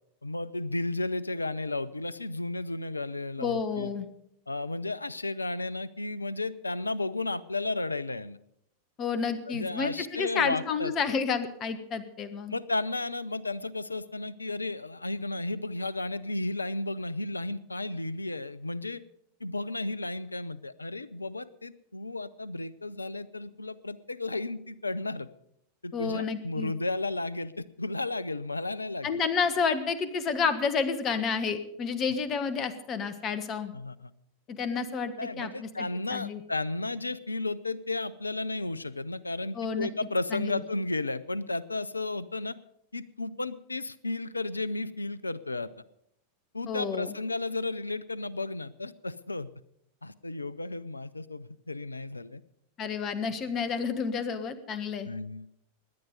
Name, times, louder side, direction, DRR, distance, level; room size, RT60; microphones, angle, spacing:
voice 1, 0.2-3.9 4.5-8.4 9.5-11.2 12.5-19.0 19.4-25.3 25.8-29.2 33.7-34.1 35.2-42.6 42.9-45.7 46.5-49.5 50.0-52.4 53.8-53.9 55.0-55.5, left 2 dB, 80° left, 19 dB, 0.5 m, -33 dB
voice 2, 3.4-4.1 9.0-12.5 25.9-26.7 29.0-33.7 34.5-36.4 39.5-39.9 40.3-40.6 46.7-47.1 52.8-55.1, left 5 dB, 30° left, 12 dB, 1.3 m, -30 dB
17.5 x 10.5 x 5.3 m, 0.75 s
figure-of-eight pair, 90°, 0 cm